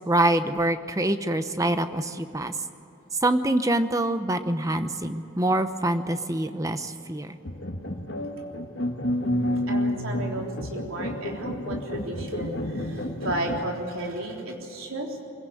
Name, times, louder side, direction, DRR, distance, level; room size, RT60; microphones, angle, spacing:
voice 1, 0.1-2.6 3.2-7.4, right 1 dB, 15° right, 9 dB, 0.8 m, -25 dB
sound 1, 7.4-13.6, left 1 dB, 55° left, 1.6 m, -30 dB
voice 2, 9.2-15.2, right 1 dB, 80° right, 0 dB, 3.6 m, -34 dB
24.0 x 16.5 x 9.2 m, 2.9 s
head